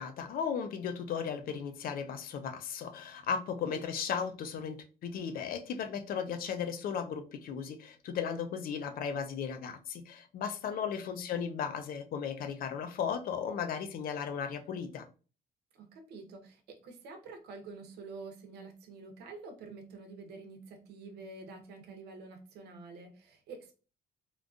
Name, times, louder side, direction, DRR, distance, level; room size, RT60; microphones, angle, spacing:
voice 1, 0.0-15.1, left 7 dB, 60° left, 0.6 m, -36 dB
voice 2, 10.7-11.2 15.7-23.7, right 3 dB, 75° right, 0.9 m, -48 dB
3.7 x 2.5 x 2.4 m
cardioid pair, 110°, 17 cm